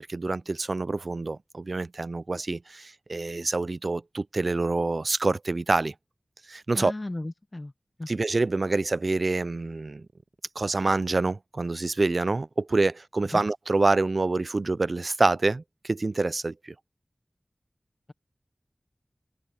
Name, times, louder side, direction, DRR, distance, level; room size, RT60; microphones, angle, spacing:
voice 1, 0.1-5.9 6.5-6.9 8.1-10.1 10.6-16.7, right 3 dB, 65° right, 0.4 m, -26 dB
voice 2, 6.8-7.7 8.0-8.1 13.3-13.4, left 2 dB, 35° left, 0.8 m, -35 dB
wide cardioid pair, 55°, 0 cm